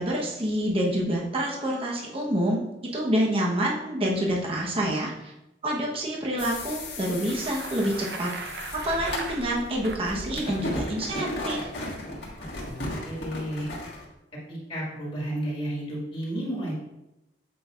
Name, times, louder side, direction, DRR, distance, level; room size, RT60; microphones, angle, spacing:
voice 1, 0.0-2.6 2.9-5.3 5.6-8.3 8.8-11.6, right 1 dB, 35° right, -2 dB, 0.9 m, -27 dB
sound 1, 6.4-14.0, left 1 dB, 70° left, 1.6 m, -36 dB
Bicycle, 6.9-10.2, right 3 dB, 70° right, 0.7 m, -39 dB
voice 2, 12.7-13.7 14.5-16.8, right 1 dB, 30° left, -5 dB, 1.7 m, -32 dB
7.8 x 5.2 x 2.4 m, 0.91 s
head